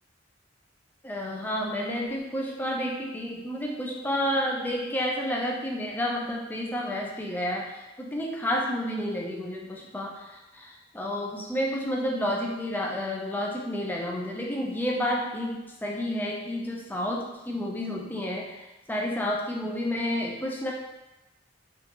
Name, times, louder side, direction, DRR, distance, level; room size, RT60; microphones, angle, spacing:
voice 1, 1.0-20.7, equal, 10° left, -1 dB, 0.4 m, -30 dB
3.6 x 2.4 x 2.8 m, 1.0 s
head